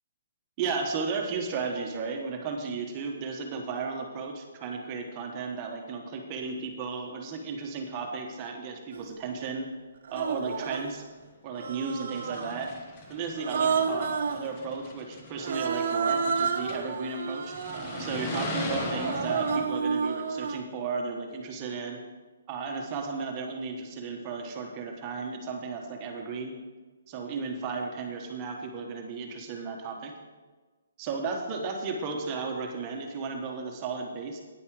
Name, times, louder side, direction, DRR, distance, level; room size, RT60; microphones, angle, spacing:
voice 1, 0.6-9.7 10.1-11.1 11.4-12.7 13.1-17.5 18.0-22.0 22.5-26.5 27.1-30.1 31.0-34.4, right 4 dB, 25° right, 2 dB, 1.4 m, -34 dB
Human voice, 8.9-9.1 10.0-10.9 11.6-12.6 13.4-14.5 15.4-20.6, right 5 dB, 55° right, 1.0 m, -30 dB
sound 1, 11.1-11.2 11.9-16.9 17.4-19.6, left 2 dB, 25° left, 1.3 m, -39 dB
9.8 x 9.5 x 5.0 m, 1.3 s
hypercardioid pair, 165°, 0 cm